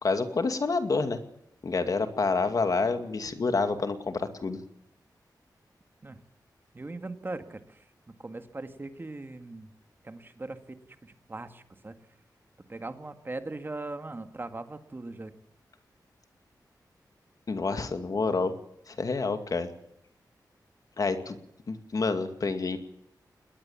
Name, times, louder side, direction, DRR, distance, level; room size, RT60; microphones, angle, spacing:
voice 1, 0.0-1.2 1.6-4.6 17.5-18.6 18.9-19.7 21.0-21.4 21.7-22.8, left 4 dB, 55° left, 8 dB, 2.2 m, -28 dB
voice 2, 6.7-9.7 10.0-12.0 12.7-15.3, right 2 dB, 30° right, 8 dB, 1.9 m, -40 dB
22.0 x 20.0 x 7.3 m, 0.78 s
wide cardioid pair, 120°, 7 cm